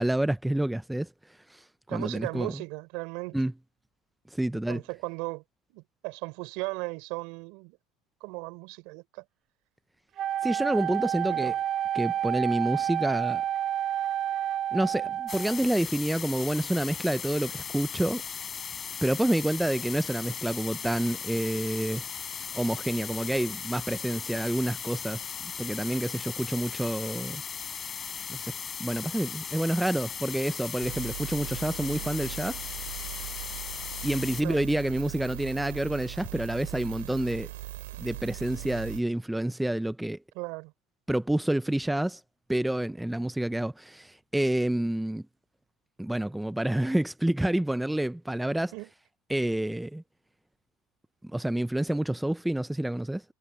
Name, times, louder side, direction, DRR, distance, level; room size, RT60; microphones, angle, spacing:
voice 1, 0.0-1.6 1.9-2.6 3.3-3.5 4.3-4.8 10.4-11.6 11.9-13.4 14.7-18.2 19.0-22.1 22.5-27.4 28.3-28.5 28.8-32.6 34.0-37.5 38.0-40.2 41.1-42.2 42.5-45.2 46.0-48.7 49.3-50.0 51.2-53.2, right 1 dB, 5° right, 0.5 m, -28 dB
voice 2, 1.9-3.4 4.7-5.4 5.7-7.8 8.2-9.2 11.2-11.5 34.4-34.6 40.3-40.7 48.7-48.9, right 27 dB, 65° right, 4.3 m, -37 dB
Wind instrument woodwind instrument, 10.2-15.6, right 10 dB, 40° right, 1.0 m, -29 dB
sound 1, 15.3-34.4, left 7 dB, 25° left, 7.0 m, -37 dB
sound 2, 30.8-39.0, right 17 dB, 90° right, 7.8 m, -40 dB
supercardioid pair, 130°, 0 cm